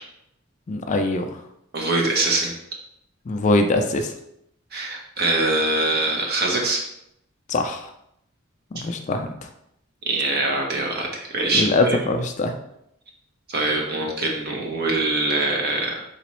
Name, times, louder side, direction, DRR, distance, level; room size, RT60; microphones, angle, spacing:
voice 1, 0.7-1.4 3.3-4.1 7.5-7.9 8.7-9.5 11.5-12.5, left 2 dB, 35° left, 6 dB, 0.3 m, -22 dB
voice 2, 1.7-2.5 4.7-6.8 10.0-12.0 13.5-16.0, right 2 dB, 50° right, 0 dB, 0.8 m, -23 dB
4.0 x 2.9 x 3.1 m, 0.77 s
head